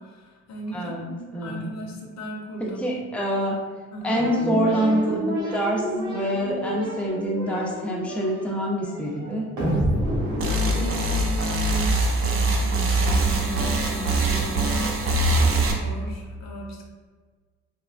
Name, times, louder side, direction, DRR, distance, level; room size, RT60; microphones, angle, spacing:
voice 1, 0.0-3.0 3.9-4.2 10.4-16.8, right 1 dB, 65° left, 0 dB, 0.7 m, -36 dB
voice 2, 0.7-1.7 2.8-3.6 4.0-9.5, equal, 5° left, -3 dB, 0.6 m, -26 dB
sound 1, 4.1-11.6, equal, 90° right, 1.3 m, -29 dB
sound 2, 10.4-15.7, right 2 dB, 45° right, 0.6 m, -23 dB
3.4 x 2.1 x 2.4 m, 1.5 s
cardioid pair, 90°, 30 cm